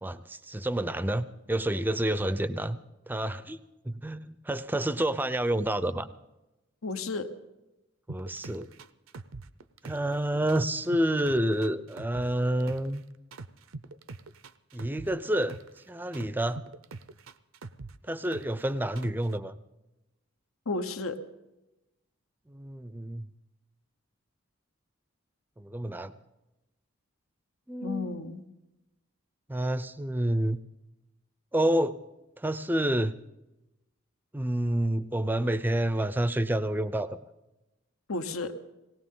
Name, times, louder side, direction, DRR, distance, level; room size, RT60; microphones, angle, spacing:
voice 1, 0.0-2.8 3.1-6.1 8.1-8.7 9.8-13.0 14.7-16.6 18.0-19.6 22.5-23.3 25.6-26.1 27.7-28.2 29.5-30.6 31.5-32.0 32.4-33.1 34.3-37.3, right 1 dB, 10° right, 13 dB, 0.5 m, -29 dB
voice 2, 6.8-7.3 20.7-21.2 27.8-28.4 38.1-38.5, left 3 dB, 85° left, 8 dB, 1.1 m, -32 dB
sound 1, 8.1-10.2 10.5-13.0 13.3-15.8 16.1-18.6 19.0-19.3, right 3 dB, 75° right, 0.6 m, -43 dB
19.0 x 18.5 x 3.8 m, 0.98 s
head